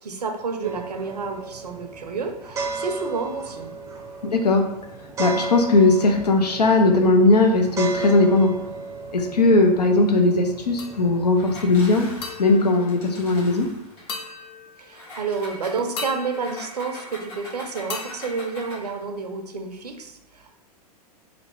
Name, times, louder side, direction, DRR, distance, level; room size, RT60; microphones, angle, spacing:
voice 1, 0.0-3.8 14.8-20.5, right 4 dB, 80° right, 6 dB, 0.5 m, -30 dB
sound 1, 0.6-11.8, right 3 dB, 15° right, 0.5 m, -34 dB
voice 2, 4.3-4.7 5.2-8.5 9.1-12.1 12.4-13.7, left 2 dB, 85° left, 3 dB, 0.5 m, -18 dB
sound 2, 10.8-11.4 12.2-13.6 14.1-15.1 16.0-17.4 17.9-19.3, left 4 dB, 30° left, 0.6 m, -38 dB
Engine, 11.4-14.1 14.9-19.0, left 1 dB, 50° left, 1.4 m, -42 dB
3.2 x 2.4 x 3.3 m, 0.87 s
figure-of-eight pair, 95°, 20 cm